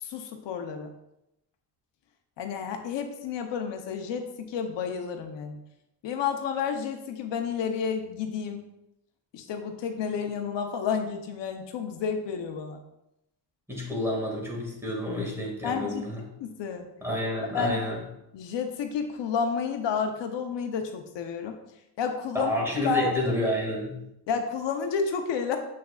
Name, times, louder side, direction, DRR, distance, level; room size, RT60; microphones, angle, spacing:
voice 1, 0.0-0.9 2.4-5.6 6.0-8.6 9.3-12.8 15.6-16.0 16.4-16.9 17.5-17.8 18.3-21.5 22.0-22.5 22.8-23.1 24.3-25.6, left 6 dB, 80° left, 5 dB, 0.9 m, -30 dB
voice 2, 13.7-16.2 17.0-18.0 22.3-24.0, left 1 dB, 5° right, -4 dB, 2.1 m, -29 dB
7.4 x 6.0 x 2.4 m, 0.85 s
cardioid pair, 130°, 42 cm